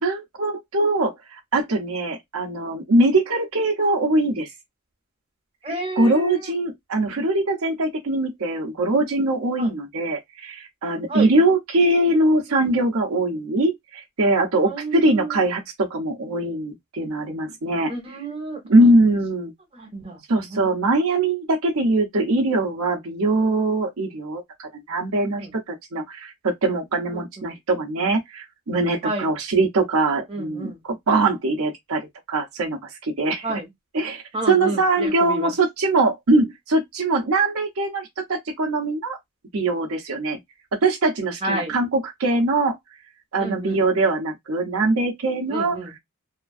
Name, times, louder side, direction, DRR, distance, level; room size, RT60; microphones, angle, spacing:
voice 1, 0.0-1.1 1.5-4.5 6.0-17.9 18.6-19.5 20.3-33.5 33.9-39.2 39.5-40.4 40.8-42.8 43.3-46.0, right 2 dB, 75° right, 0.7 m, -22 dB
voice 2, 5.6-6.4 9.6-9.7 11.1-11.3 14.6-15.4 17.9-18.6 19.7-20.2 20.5-20.7 25.4-25.5 27.1-27.2 29.0-29.3 30.3-30.8 33.4-33.7 34.3-35.5 41.4-41.7 43.4-43.8 45.5-45.9, right 2 dB, 25° right, 1.1 m, -30 dB
2.9 x 2.5 x 2.3 m
head